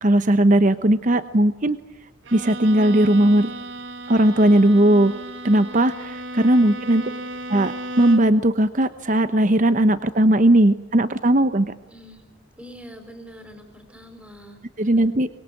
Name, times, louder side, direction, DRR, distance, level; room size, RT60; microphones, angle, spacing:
voice 1, 0.0-1.8 2.3-3.5 4.1-5.1 5.4-7.0 7.5-11.7 14.8-15.4, right 1 dB, 40° right, 12 dB, 0.9 m, -18 dB
Bowed string instrument, 2.2-8.5, right 1 dB, 65° right, 1.3 m, -34 dB
voice 2, 7.0-7.3 11.9-12.3 12.6-14.6, equal, 5° right, 7 dB, 4.6 m, -44 dB
25.0 x 22.0 x 9.1 m, 0.93 s
head